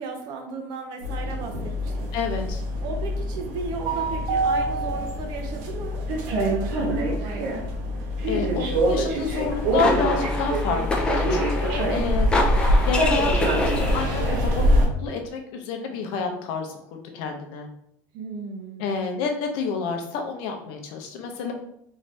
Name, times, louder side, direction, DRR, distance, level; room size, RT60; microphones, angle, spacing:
voice 1, 0.0-2.1 2.8-7.6 11.8-12.2 18.1-19.2, right 4 dB, 55° right, 3 dB, 0.5 m, -35 dB
sound 1, 1.0-14.9, equal, 80° right, 0.9 m, -24 dB
voice 2, 2.1-2.6 8.3-12.4 12.9-17.7 18.8-21.5, left 5 dB, 65° left, 3 dB, 0.7 m, -29 dB
tennis-in-dome-close-squeacking-feet, 9.4-14.4, left 2 dB, 10° left, 0.5 m, -28 dB
3.2 x 2.6 x 3.2 m, 0.75 s
cardioid pair, 150°, 9 cm